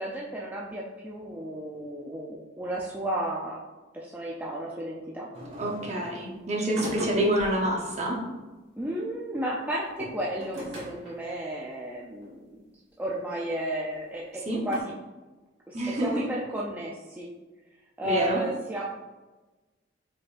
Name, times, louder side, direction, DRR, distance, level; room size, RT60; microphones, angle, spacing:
voice 1, 0.0-3.6 3.9-5.3 8.8-12.6 13.0-14.9 15.7-17.3 18.0-18.8, right 1 dB, 10° right, -5 dB, 0.4 m, -33 dB
sound 1, 5.3-6.1 6.7-7.6 9.9-11.3 12.2-12.3 13.1-13.2 14.7-14.8, equal, 60° right, 1.4 m, -39 dB
voice 2, 5.6-8.3 14.5-14.7 15.7-16.2 18.0-18.4, right 1 dB, 35° right, -2 dB, 0.9 m, -27 dB
5.0 x 3.8 x 2.5 m, 1.2 s
head